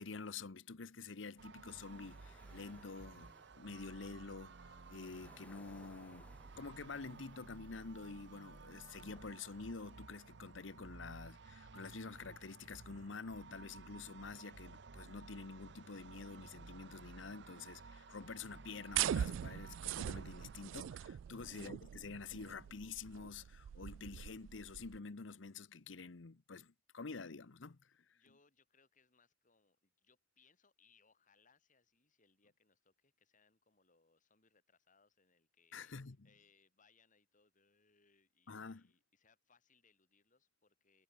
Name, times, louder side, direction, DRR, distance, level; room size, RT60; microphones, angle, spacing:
voice 1, 0.0-6.3 6.6-27.8 35.7-36.2 38.5-38.9, left 4 dB, 80° left, 0.9 m, -48 dB
sound 1, 1.2-10.4, left 1 dB, 10° left, 2.6 m, -67 dB
sound 2, 1.4-20.7, right 4 dB, 65° right, 0.8 m, -56 dB
sound 3, 18.9-25.0, right 10 dB, 85° right, 0.3 m, -41 dB
voice 2, 27.8-41.0, left 5 dB, 45° left, 5.1 m, -73 dB
head